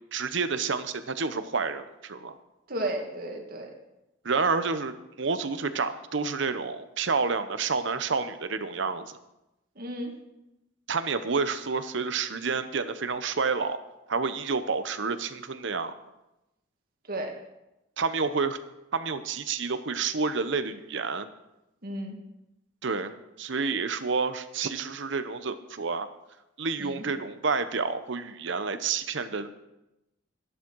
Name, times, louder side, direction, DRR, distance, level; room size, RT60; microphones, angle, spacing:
voice 1, 0.1-2.4 4.2-9.1 10.9-13.8 14.1-16.0 18.0-18.6 18.9-21.3 22.8-26.1 26.6-29.5, right 4 dB, 65° right, 11 dB, 0.9 m, -29 dB
voice 2, 2.7-3.7 9.8-10.2 17.1-17.4 21.8-22.2 26.8-27.0, right 1 dB, 50° right, 2 dB, 2.1 m, -33 dB
14.0 x 11.0 x 4.7 m, 0.94 s
head